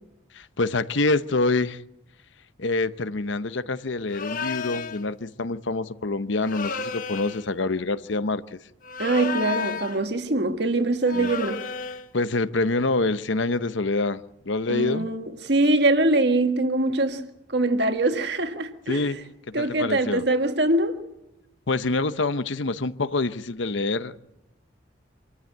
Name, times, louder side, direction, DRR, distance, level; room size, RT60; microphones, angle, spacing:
voice 1, 0.3-1.8 2.6-8.4 11.1-11.3 12.1-14.2 14.5-15.1 18.9-19.2 19.6-20.2 21.7-24.2, left 3 dB, 75° left, 0.9 m, -26 dB
sound 1, 4.1-5.0 6.4-7.5 8.8-10.1 11.0-12.1, left 5 dB, 45° left, 1.0 m, -32 dB
voice 2, 9.0-11.6 14.7-19.0 19.5-21.0, right 2 dB, 55° right, 1.7 m, -23 dB
26.5 x 14.0 x 9.2 m
head